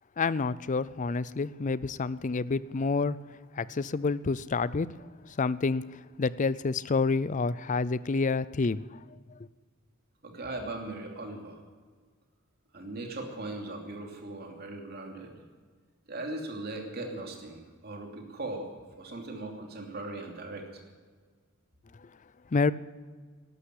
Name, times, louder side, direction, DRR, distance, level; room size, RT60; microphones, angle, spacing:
voice 1, 0.2-3.2 3.6-4.9 5.3-5.8 6.2-9.0 22.5-22.7, left 4 dB, 35° left, 18 dB, 0.5 m, -28 dB
voice 2, 10.2-11.6 12.7-15.4 16.1-20.7, right 2 dB, 50° right, 2 dB, 2.8 m, -39 dB
12.5 x 11.5 x 9.7 m, 1.5 s
head